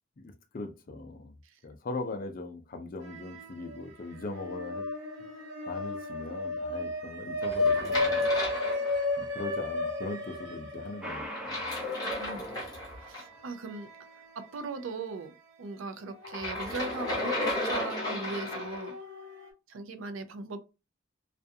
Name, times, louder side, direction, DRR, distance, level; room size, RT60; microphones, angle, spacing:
voice 1, 0.2-1.3 1.6-4.9 5.7-8.2 9.2-11.2, left 2 dB, 45° left, 0.5 m, -40 dB
sound 1, 3.0-3.8 4.1-14.5 14.9-15.0 16.1-19.5, left 2 dB, 65° right, 0.8 m, -34 dB
sound 2, 7.4-9.4 11.3-13.2 16.2-18.9, left 1 dB, 20° left, 0.9 m, -34 dB
sound 3, 11.0-13.4, equal, 5° right, 0.6 m, -43 dB
voice 2, 12.0-12.5 13.1-13.9 14.4-18.9 19.7-20.6, right 3 dB, 80° right, 0.4 m, -39 dB
2.4 x 2.3 x 2.6 m
head